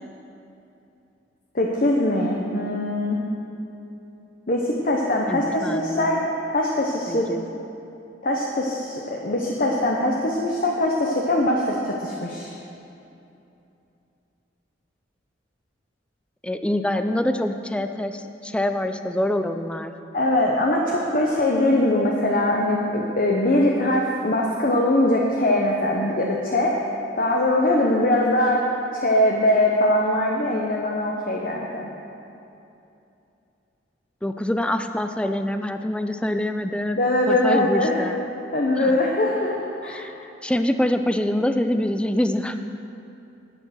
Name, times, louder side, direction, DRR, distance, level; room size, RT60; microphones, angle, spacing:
voice 1, 1.5-3.2 4.5-6.2 6.5-7.3 8.2-12.5 20.1-26.8 27.2-28.6 28.9-31.9 37.0-38.0 38.5-40.1, left 1 dB, 50° left, -1 dB, 0.9 m, -22 dB
voice 2, 5.3-6.2 7.1-7.4 16.4-19.9 34.2-37.0 37.3-38.2 38.8-39.0 39.8-40.1 40.4-42.6, left 1 dB, 5° left, 8 dB, 0.4 m, -25 dB
10.5 x 8.6 x 6.3 m, 2.8 s
head